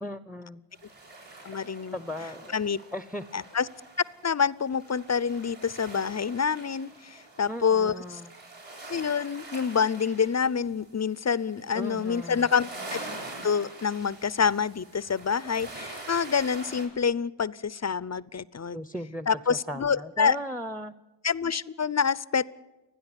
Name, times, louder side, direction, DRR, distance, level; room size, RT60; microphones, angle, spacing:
voice 1, 0.0-0.6 1.9-2.6 2.9-3.2 7.5-8.3 11.7-12.5 18.7-20.9, equal, ahead, 15 dB, 0.8 m, -37 dB
sound 1, 0.7-16.9, right 2 dB, 70° right, 7.8 m, -45 dB
voice 2, 1.4-2.0 2.5-2.8 3.3-3.7 4.2-8.2 8.9-12.7 13.4-18.8 19.3-20.4 21.2-22.5, left 6 dB, 35° left, 20 dB, 0.6 m, -27 dB
29.5 x 10.0 x 9.9 m, 1.1 s
wide cardioid pair, 65°, 45 cm